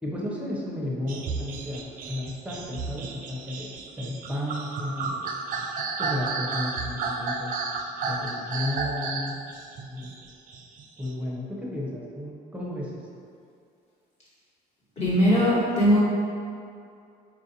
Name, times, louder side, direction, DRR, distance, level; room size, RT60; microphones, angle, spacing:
voice 1, 0.0-5.3 6.0-7.6 8.1-9.4 9.9-10.1 11.0-13.1, left 1 dB, 5° right, -4 dB, 0.7 m, -33 dB
sound 1, 1.1-11.1, right 4 dB, 55° right, 0.4 m, -32 dB
voice 2, 15.0-16.0, equal, 40° left, -8 dB, 1.4 m, -20 dB
4.4 x 2.5 x 2.7 m, 2.4 s
cardioid pair, 110°, 17 cm